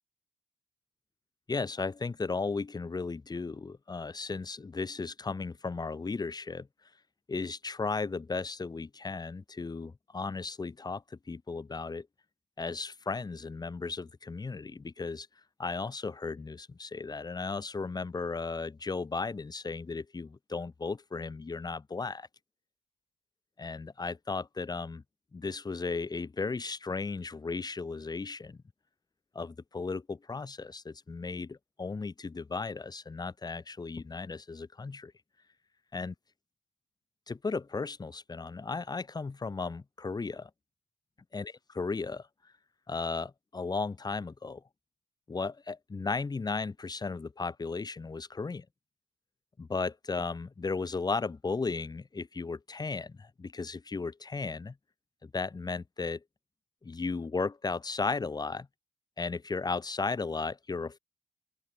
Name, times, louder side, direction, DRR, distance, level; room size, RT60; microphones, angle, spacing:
voice 1, 1.5-6.7 7.3-12.1 12.6-15.3 15.6-22.3 23.6-25.0 25.3-28.6 29.3-35.1 35.9-36.1 37.3-40.5 41.3-42.3 42.9-44.6 45.3-48.6 49.6-54.7 55.2-56.2 56.8-58.7 59.2-61.0, left 4 dB, 30° left, 5.7 m, -35 dB
open air
figure-of-eight pair, 45°, 14 cm